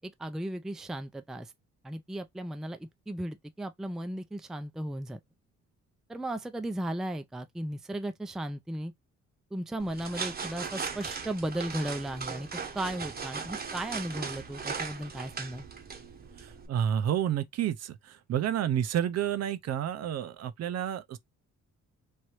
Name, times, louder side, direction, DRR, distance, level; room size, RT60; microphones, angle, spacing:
voice 1, 0.0-1.5 1.8-5.2 6.1-8.9 9.5-12.5 12.7-15.6, right 1 dB, ahead, 0.4 m, -36 dB
sound 1, 9.8-16.7, right 5 dB, 30° right, 0.9 m, -38 dB
voice 2, 16.4-21.2, right 10 dB, 60° right, 0.6 m, -30 dB
3.3 x 2.6 x 2.9 m
cardioid pair, 90°, 30 cm